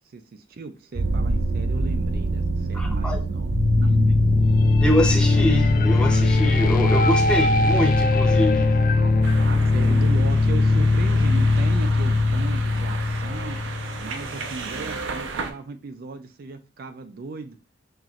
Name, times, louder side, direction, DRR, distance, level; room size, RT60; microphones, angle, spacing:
voice 1, 0.1-4.2 9.0-9.1 9.4-13.6 14.0-17.6, right 3 dB, 55° right, 8 dB, 0.4 m, -36 dB
sound 1, 0.9-11.8, right 3 dB, 70° right, 1.1 m, -28 dB
voice 2, 2.7-3.2 4.8-8.8, left 1 dB, 5° left, 2 dB, 0.8 m, -25 dB
sound 2, 3.5-14.4, left 3 dB, 50° left, 0.4 m, -20 dB
sound 3, 9.2-15.5, right 4 dB, 90° right, 0.7 m, -35 dB
5.7 x 3.0 x 2.4 m, 0.34 s
head